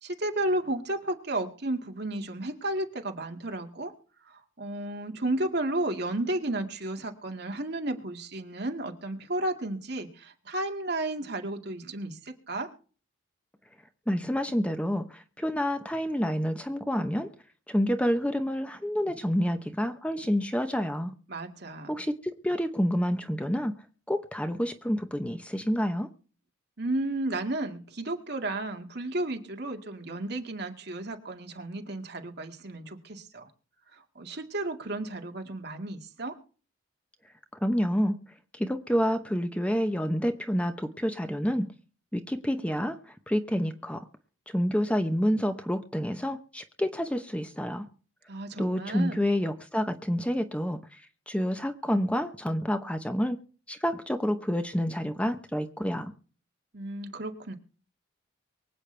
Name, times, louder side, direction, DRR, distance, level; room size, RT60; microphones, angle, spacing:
voice 1, 0.0-3.9 4.3-12.7 21.3-22.0 26.8-33.5 33.9-36.4 48.3-49.3 56.7-57.5, right 1 dB, 55° right, 4 dB, 2.0 m, -33 dB
voice 2, 14.1-17.3 17.7-21.1 21.9-23.7 24.1-26.1 37.6-38.2 38.5-41.7 42.1-44.0 44.5-47.9 48.6-53.4 53.7-56.1, equal, 5° left, 7 dB, 0.8 m, -28 dB
24.0 x 8.5 x 3.3 m, 0.39 s
head